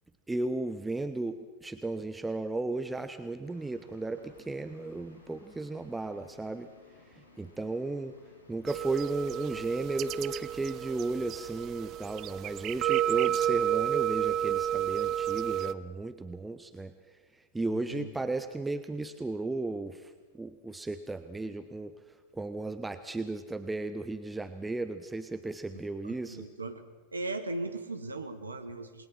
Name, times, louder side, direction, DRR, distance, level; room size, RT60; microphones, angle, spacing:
voice 1, 0.3-6.7 7.1-8.1 8.5-16.9 17.3-21.9 22.3-26.5, right 2 dB, 10° right, 10 dB, 1.0 m, -35 dB
sound 1, 3.4-11.8, left 2 dB, 65° left, 7.6 m, -59 dB
sound 2, 8.7-15.7, right 11 dB, 35° right, 0.7 m, -31 dB
voice 2, 17.7-18.1 26.0-26.9 27.1-29.1, right 2 dB, 80° right, 8 dB, 1.9 m, -38 dB
28.0 x 21.0 x 5.9 m, 1.4 s
figure-of-eight pair, 90°, 0 cm